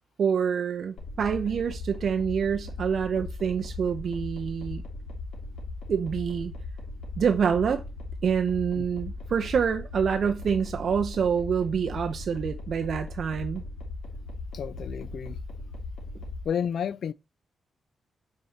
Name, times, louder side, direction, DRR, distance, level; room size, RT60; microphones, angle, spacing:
voice 1, 0.2-4.8 5.9-6.5 7.2-7.8 8.2-13.6, right 7 dB, 55° right, 0.6 m, -26 dB
sound 1, 1.0-16.4, left 2 dB, 85° left, 2.9 m, -38 dB
voice 2, 14.5-15.4 16.5-17.1, left 8 dB, 65° left, 0.3 m, -31 dB
8.6 x 4.5 x 4.1 m
wide cardioid pair, 145°, 0 cm